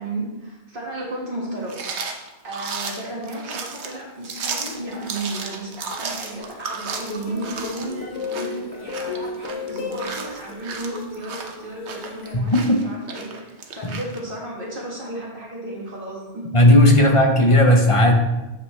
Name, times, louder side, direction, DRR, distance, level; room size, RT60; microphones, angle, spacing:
voice 1, 0.0-1.8 2.4-16.4 16.9-17.2, right 1 dB, 50° right, -4 dB, 2.0 m, -33 dB
sound 1, 1.7-14.2, right 4 dB, 75° right, 1.1 m, -34 dB
sound 2, 4.5-6.4 6.7-12.4, left 4 dB, 90° left, 1.3 m, -35 dB
voice 2, 16.5-18.1, left 1 dB, 30° left, 2 dB, 0.9 m, -14 dB
7.9 x 5.7 x 3.2 m, 1.0 s
omnidirectional pair, 1.2 m